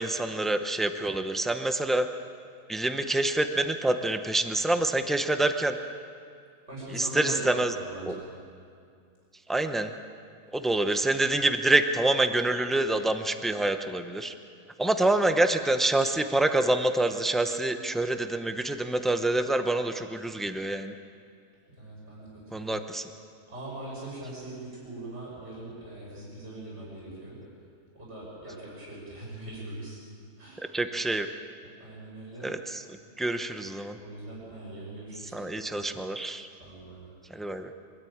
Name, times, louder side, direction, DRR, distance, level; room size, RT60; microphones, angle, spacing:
voice 1, 0.0-2.1 2.7-5.8 6.9-7.7 8.1-8.2 9.5-9.9 10.5-14.3 14.8-20.9 22.5-23.1 30.6-31.3 32.4-34.0 35.3-36.5 37.3-37.7, right 2 dB, ahead, 7 dB, 0.4 m, -26 dB
voice 2, 6.7-8.2 21.8-22.3 22.5-22.7 23.5-27.4 27.9-30.0 30.4-30.7 31.8-32.5 33.9-35.9 36.6-37.1, right 1 dB, 45° right, -5 dB, 6.7 m, -41 dB
24.0 x 13.5 x 8.7 m, 2.3 s
omnidirectional pair, 1.6 m